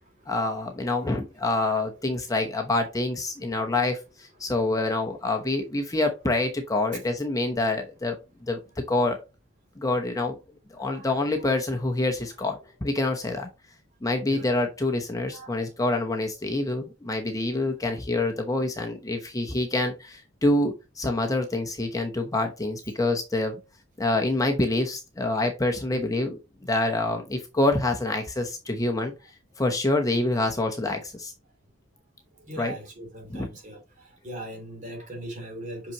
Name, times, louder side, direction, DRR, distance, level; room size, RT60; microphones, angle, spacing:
voice 1, 0.3-8.2 8.4-9.2 9.8-10.4 10.7-13.5 14.0-23.6 24.0-29.1 29.6-31.3 32.6-32.7 33.3-33.5, left 2 dB, 20° left, 0.9 m, -26 dB
voice 2, 10.8-11.4 14.3-14.5 15.3-15.6 25.9-26.0 32.5-33.8 34.2-35.9, right 1 dB, 40° right, 2.9 m, -40 dB
5.9 x 5.7 x 2.9 m
head